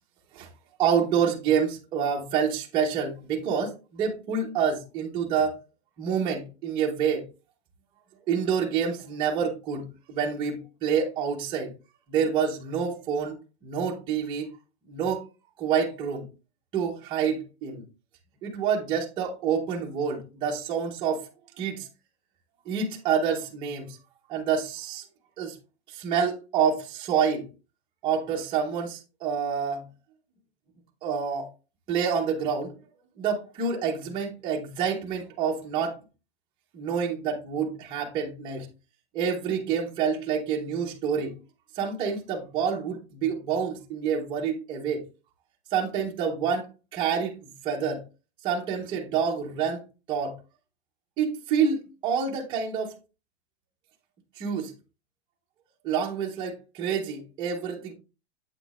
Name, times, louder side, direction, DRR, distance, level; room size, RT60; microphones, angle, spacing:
voice 1, 0.8-5.6 6.0-7.2 8.3-11.7 12.1-13.4 13.6-14.4 14.9-15.2 15.6-16.3 16.7-17.8 18.4-21.2 21.6-21.9 22.7-24.0 24.3-25.0 25.4-25.5 25.9-27.5 28.0-29.8 31.0-31.5 31.9-32.7 33.2-36.0 36.7-38.7 39.1-41.4 41.8-45.0 45.7-46.7 46.9-48.0 48.4-49.8 50.1-50.3 51.2-52.9 54.4-54.7 55.8-57.9, right 7 dB, 15° right, 0.8 m, -27 dB
8.0 x 6.0 x 2.4 m
supercardioid pair, 175°, 32 cm